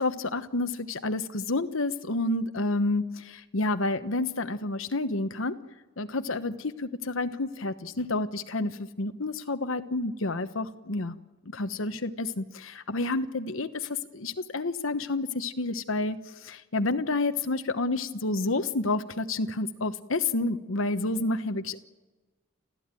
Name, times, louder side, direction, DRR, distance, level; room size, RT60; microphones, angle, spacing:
voice 1, 0.0-5.6 6.0-11.2 11.5-21.8, left 2 dB, 80° left, 9 dB, 1.1 m, -29 dB
30.0 x 15.0 x 9.1 m, 1.3 s
head